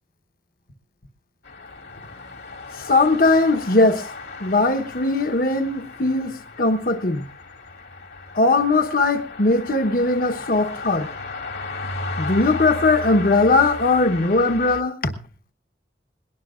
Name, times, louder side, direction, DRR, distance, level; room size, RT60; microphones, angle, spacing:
sound 1, 1.4-14.8, left 3 dB, 75° left, 2.2 m, -35 dB
voice 1, 2.8-4.1 4.4-7.2 8.3-11.1 12.2-15.1, left 3 dB, 55° left, 1.1 m, -19 dB
22.0 x 18.5 x 2.5 m
head